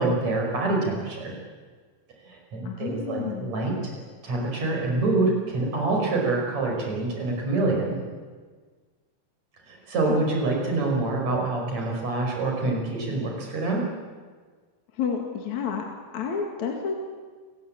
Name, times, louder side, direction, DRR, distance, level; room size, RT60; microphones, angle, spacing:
voice 1, 0.0-1.4 2.5-3.7 4.2-8.0 9.9-13.8, right 2 dB, 50° right, 0 dB, 6.4 m, -26 dB
voice 2, 2.6-3.6 10.0-10.2 15.0-15.8 16.1-16.9, left 6 dB, 60° left, 2 dB, 3.3 m, -30 dB
29.5 x 16.0 x 8.7 m, 1.5 s
omnidirectional pair, 4.0 m